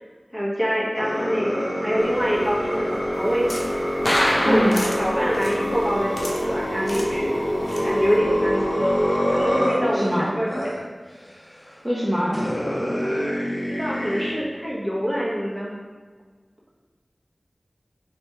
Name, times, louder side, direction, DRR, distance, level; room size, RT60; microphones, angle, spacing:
voice 1, 0.3-3.7 4.3-7.3 7.8-9.0 9.3-10.7 13.6-15.7, equal, ahead, -7 dB, 1.3 m, -25 dB
sound 1, 1.0-10.1 10.5-10.7 11.7-11.8 12.3-14.3, equal, 50° left, 1.1 m, -25 dB
sound 2, 2.0-9.5, equal, 35° left, 0.7 m, -31 dB
sound 3, 3.1-8.2, left 1 dB, 80° left, 0.5 m, -40 dB
voice 2, 4.4-4.8 9.9-10.3 11.8-12.5, equal, 20° right, -7 dB, 0.6 m, -23 dB
3.3 x 3.0 x 4.2 m, 1.5 s
wide cardioid pair, 45°, 0 cm